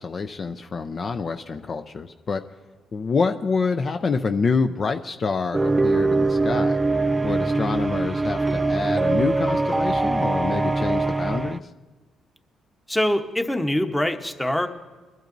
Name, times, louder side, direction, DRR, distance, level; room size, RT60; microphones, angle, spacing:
voice 1, 0.0-2.4 2.9-6.8 7.2-11.7, left 4 dB, 45° left, 7 dB, 0.5 m, -27 dB
sound 1, 5.5-11.6, right 3 dB, 15° right, 0.4 m, -22 dB
voice 2, 12.9-14.7, left 1 dB, 5° left, 7 dB, 0.9 m, -23 dB
23.0 x 12.0 x 2.6 m, 1.3 s
cardioid pair, 90°, 0 cm